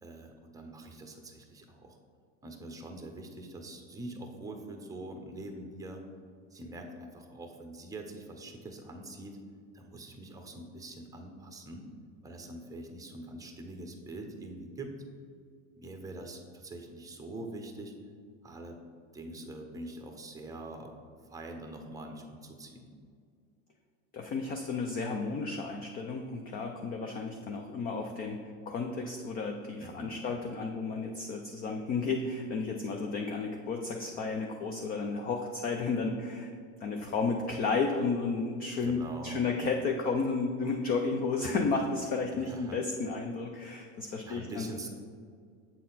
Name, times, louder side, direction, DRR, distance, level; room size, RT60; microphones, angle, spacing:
voice 1, 0.0-2.0 2.4-6.0 6.5-9.4 9.7-11.9 12.2-14.9 15.8-17.9 18.4-18.8 19.1-20.9 21.3-22.9 29.8-30.2 38.8-39.5 42.3-42.8 44.2-44.9, right 1 dB, 10° right, 4 dB, 0.7 m, -44 dB
voice 2, 24.1-36.5 36.8-44.9, left 4 dB, 25° left, 3 dB, 0.3 m, -32 dB
7.5 x 4.1 x 4.0 m, 2.1 s
hypercardioid pair, 110°, 41 cm